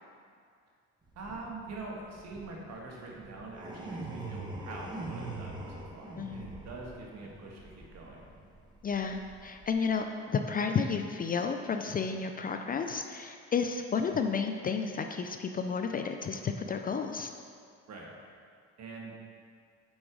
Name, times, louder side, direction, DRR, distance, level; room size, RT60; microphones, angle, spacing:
sound 1, 1.1-10.0, right 2 dB, 15° right, 0.9 m, -43 dB
voice 1, 1.1-8.2 17.9-18.1 18.8-19.1, right 3 dB, 60° right, -1 dB, 1.5 m, -44 dB
voice 2, 6.2-6.5 8.8-17.3, left 5 dB, 30° left, 6 dB, 0.4 m, -32 dB
6.2 x 4.9 x 4.8 m, 2.2 s
cardioid pair, 95°, 30 cm